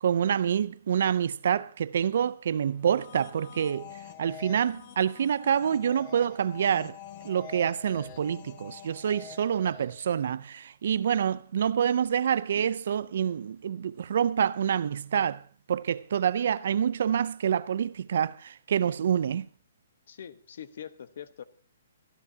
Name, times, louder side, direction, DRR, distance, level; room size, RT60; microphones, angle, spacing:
voice 1, 0.0-7.0 7.2-15.4 15.7-19.5, right 8 dB, 65° right, 0.6 m, -27 dB
sound 1, 2.7-10.1, left 8 dB, 40° left, 1.5 m, -46 dB
voice 2, 20.1-21.4, left 9 dB, 60° left, 1.2 m, -43 dB
24.0 x 12.0 x 2.9 m
hypercardioid pair, 145°, 0 cm